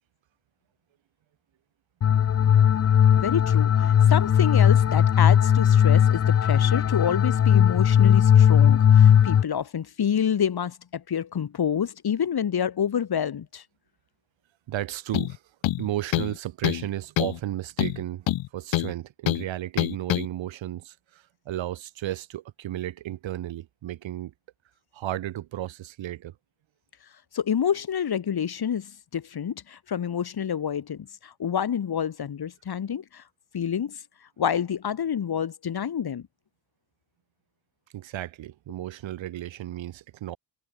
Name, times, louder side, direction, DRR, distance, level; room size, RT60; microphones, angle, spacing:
sound 1, 2.0-9.4, left 9 dB, 35° left, 0.6 m, -18 dB
voice 1, 3.2-13.6 27.3-33.2 33.5-34.0 34.4-36.3, left 8 dB, 55° left, 5.1 m, -28 dB
voice 2, 14.7-15.4 15.8-18.3 18.5-24.3 24.9-26.4 37.9-40.4, right 13 dB, 80° right, 3.2 m, -33 dB
sound 2, 15.1-15.4 15.6-16.4 16.6-16.9 17.2-17.4 17.8-18.9 19.3-19.4 19.8-20.3, left 15 dB, 80° left, 1.2 m, -25 dB
cardioid pair, 95°, 45 cm